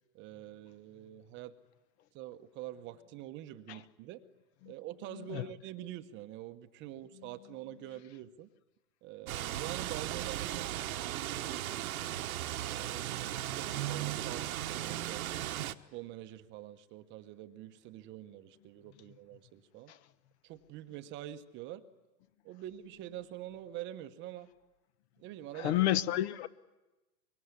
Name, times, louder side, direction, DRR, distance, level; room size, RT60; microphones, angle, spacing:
voice 1, 0.1-1.5 2.1-4.2 4.7-8.5 9.0-11.9 12.7-15.3 15.6-19.9 20.4-21.8 22.4-24.5 25.2-25.8, right 13 dB, 25° right, 0.9 m, -46 dB
sound 1, 9.3-15.7, right 13 dB, 55° right, 1.2 m, -36 dB
voice 2, 25.6-26.5, left 13 dB, 40° left, 1.1 m, -30 dB
24.5 x 23.5 x 9.7 m
hypercardioid pair, 130°, 49 cm